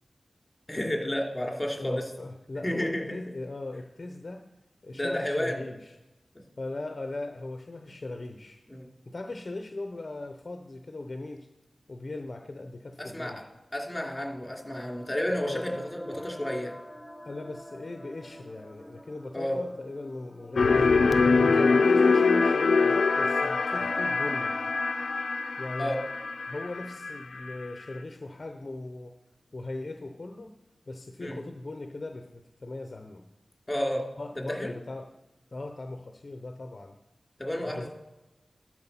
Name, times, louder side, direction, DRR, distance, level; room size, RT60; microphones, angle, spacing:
voice 1, 0.7-2.0 2.6-3.2 4.9-5.6 8.7-8.9 13.0-13.3 13.7-16.7 19.3-19.6 21.5-21.7 25.8-26.0 31.2-31.4 33.7-34.0 34.5-34.7 37.4-37.9, left 1 dB, 20° left, 0 dB, 2.9 m, -31 dB
voice 2, 1.8-4.4 4.8-5.9 6.6-8.6 9.1-11.5 11.9-13.4 15.4-15.6 16.1-16.3 17.2-21.0 21.5-24.6 25.6-26.0 26.5-29.2 29.5-30.5 30.9-33.2 34.2-35.1 35.5-36.9 37.6-37.9, left 2 dB, 50° left, 5 dB, 0.8 m, -39 dB
sound 1, 13.8-27.9, left 1 dB, ahead, 0.9 m, -44 dB
sound 2, 20.6-27.5, left 4 dB, 85° left, 0.5 m, -24 dB
12.5 x 4.5 x 5.8 m, 1.0 s
wide cardioid pair, 60°, 0 cm